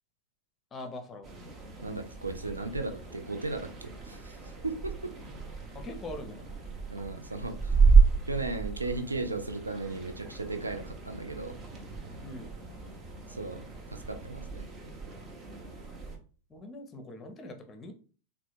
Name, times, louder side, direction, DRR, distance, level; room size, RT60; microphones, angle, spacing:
voice 1, 0.7-1.3 5.7-6.4 12.2-12.5 16.5-17.9, left 1 dB, 20° left, 6 dB, 0.6 m, -42 dB
sound 1, 1.2-16.2, right 5 dB, 25° right, 0.7 m, -30 dB
voice 2, 1.8-4.4 4.6-5.1 6.9-7.7 8.3-11.6 13.3-14.6, right 3 dB, 80° right, 7 dB, 0.4 m, -36 dB
3.9 x 2.1 x 3.1 m, 0.38 s
figure-of-eight pair, 90°, 0 cm